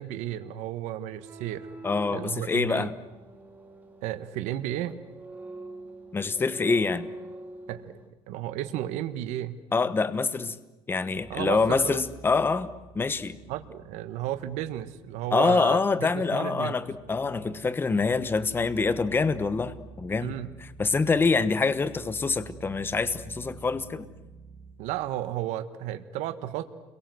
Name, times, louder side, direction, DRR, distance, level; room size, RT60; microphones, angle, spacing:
voice 1, 0.0-1.7 2.1-2.9 4.0-5.0 7.7-8.0 8.3-9.6 11.3-12.0 13.5-16.8 20.2-20.5 24.8-26.6, right 13 dB, 80° right, 1.4 m, -33 dB
sound 1, 1.1-8.1, right 2 dB, 15° right, 3.0 m, -45 dB
voice 2, 1.8-2.9 6.1-7.1 9.7-10.6 10.9-12.7 12.9-13.4 15.3-20.3 20.8-24.0, left 4 dB, 20° left, 1.1 m, -25 dB
sound 2, 11.1-24.7, right 5 dB, 30° right, 7.3 m, -49 dB
29.5 x 23.0 x 7.9 m
cardioid pair, 135°, 12 cm